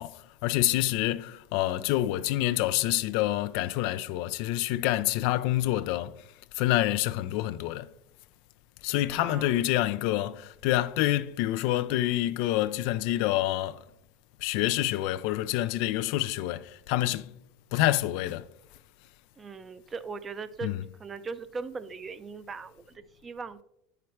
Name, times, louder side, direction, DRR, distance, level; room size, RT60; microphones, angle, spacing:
voice 1, 0.0-6.2 6.5-7.9 8.8-13.8 14.4-17.3 17.7-18.5 20.6-20.8, left 15 dB, 65° left, 0.3 m, -27 dB
voice 2, 9.1-9.7 19.4-20.7 21.0-23.6, right 4 dB, 25° right, 0.6 m, -39 dB
8.3 x 5.8 x 3.2 m
hypercardioid pair, 95°, 0 cm